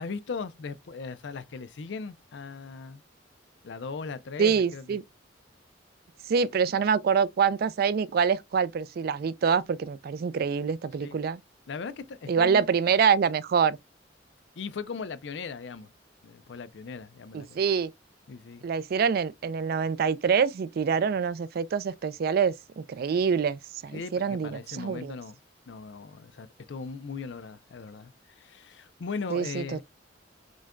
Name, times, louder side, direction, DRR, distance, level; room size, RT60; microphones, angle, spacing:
voice 1, 0.0-3.0 3.6-5.0 11.0-11.3 11.7-12.6 14.6-15.9 16.2-17.6 18.3-18.6 23.9-25.4 25.7-28.1 28.4-29.8, left 5 dB, 70° left, 0.5 m, -38 dB
voice 2, 4.4-5.0 6.3-11.4 12.3-13.8 17.3-17.9 18.6-25.1 29.3-29.8, right 6 dB, 55° right, 0.3 m, -25 dB
6.2 x 2.2 x 2.4 m
head